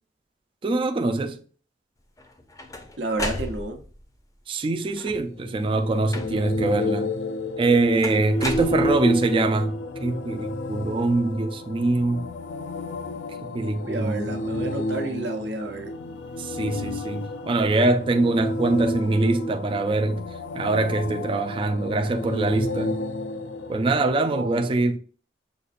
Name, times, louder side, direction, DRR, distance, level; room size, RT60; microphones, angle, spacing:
voice 1, 0.6-1.4 4.5-7.1 7.6-12.3 13.4-14.3 16.4-20.2 20.5-23.0 23.7-25.0, right 2 dB, 30° right, 0.3 m, -23 dB
sound 1, 2.2-4.0 4.9-5.4 6.1-6.7 8.0-9.3, left 1 dB, 20° left, 0.5 m, -34 dB
voice 2, 3.0-3.8 13.8-15.9 24.3-24.7, right 2 dB, 70° right, 0.8 m, -30 dB
sound 2, 5.3-24.1, left 1 dB, 85° left, 0.4 m, -31 dB
6.4 x 2.5 x 2.5 m
head